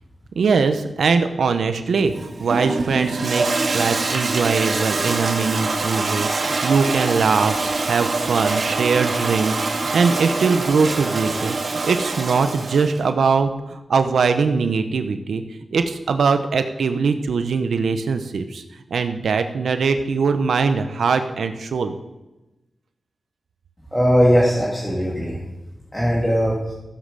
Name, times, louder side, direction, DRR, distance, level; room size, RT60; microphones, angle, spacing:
voice 1, 0.4-3.5 3.7-15.4 15.7-18.6 18.9-21.9, right 5 dB, 90° right, 8 dB, 0.8 m, -21 dB
Toilet flush, 2.0-13.0, right 3 dB, 60° right, 1.9 m, -24 dB
voice 2, 23.9-25.4 25.9-26.7, equal, 15° left, -6 dB, 2.4 m, -19 dB
15.0 x 7.5 x 6.8 m, 1.0 s
wide cardioid pair, 85°, 0 cm